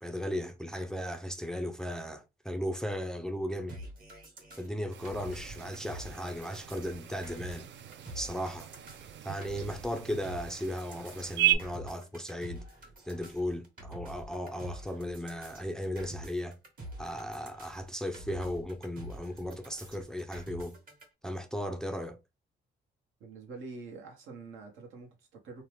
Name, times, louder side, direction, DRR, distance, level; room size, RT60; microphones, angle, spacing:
voice 1, 0.0-3.8 4.6-7.7 8.1-8.7 9.2-12.6 13.1-16.6 17.0-20.8 21.2-22.2, equal, 5° left, 0.4 m, -36 dB
sound 1, 3.7-21.0, right 1 dB, 45° right, 1.1 m, -47 dB
sound 2, 4.9-11.6, right 14 dB, 65° right, 0.4 m, -36 dB
voice 2, 23.2-25.6, right 3 dB, 85° right, 0.9 m, -46 dB
2.8 x 2.0 x 3.1 m
cardioid pair, 90°, 20 cm